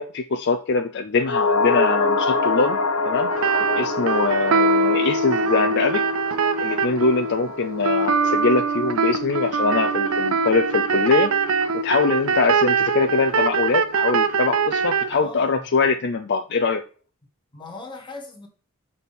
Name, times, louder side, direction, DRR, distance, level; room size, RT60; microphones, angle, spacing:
voice 1, 0.0-2.8 3.1-3.3 3.7-6.0 6.6-11.3 11.7-16.8, left 4 dB, 50° left, 0.5 m, -23 dB
sound 1, 1.2-9.7 10.0-10.1, left 3 dB, 80° left, 0.9 m, -26 dB
sound 2, 3.3-15.1, right 4 dB, 65° right, 0.6 m, -22 dB
voice 2, 15.1-15.6 17.5-18.5, left 3 dB, 20° left, 1.5 m, -38 dB
6.1 x 4.2 x 5.3 m
head